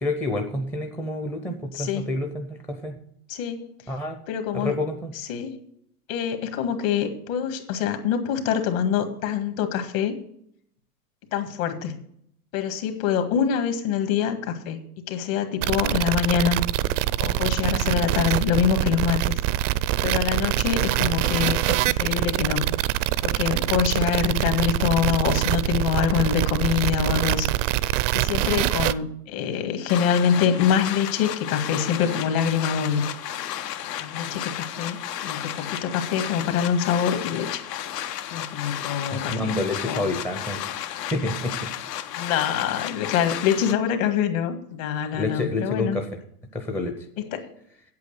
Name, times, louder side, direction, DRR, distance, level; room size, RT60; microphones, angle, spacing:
voice 1, 0.0-3.0 3.9-4.2 4.5-5.1 39.1-41.7 45.1-46.1 46.5-47.0, left 2 dB, 5° left, 4 dB, 0.5 m, -28 dB
voice 2, 1.8-2.1 3.3-3.7 4.3-4.8 5.2-5.6 6.1-10.2 11.3-12.0 12.5-14.8 15.1-16.6 17.2-19.4 20.0-22.7 23.2-27.5 28.1-33.1 34.0-37.6 38.3-39.5 39.9-40.1 42.1-46.0 47.3-47.5, left 8 dB, 55° left, 7 dB, 1.9 m, -25 dB
sound 1, 15.6-28.9, right 15 dB, 50° right, 0.5 m, -24 dB
sound 2, 29.9-43.7, left 11 dB, 80° left, 1.0 m, -33 dB
8.3 x 8.3 x 6.6 m, 0.71 s
hypercardioid pair, 135°, 48 cm